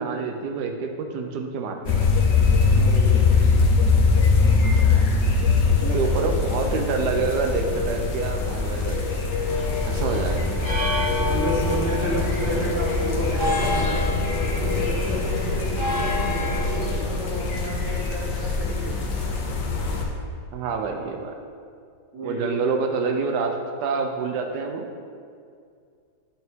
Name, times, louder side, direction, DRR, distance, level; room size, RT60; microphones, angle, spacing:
voice 1, 0.0-2.1 4.9-5.1 5.7-9.0 9.8-10.5 20.5-21.3 22.2-24.9, right 4 dB, 75° right, 4 dB, 1.2 m, -27 dB
sound 1, 1.9-20.0, left 4 dB, 75° left, 1.6 m, -23 dB
voice 2, 2.7-3.2 5.8-6.3 10.0-10.3 11.2-14.0 14.4-19.1 22.1-22.6, equal, 40° right, -6 dB, 1.5 m, -31 dB
sound 2, 9.4-16.8, left 1 dB, 15° left, 1.4 m, -28 dB
8.9 x 5.7 x 3.6 m, 2.3 s
omnidirectional pair, 1.9 m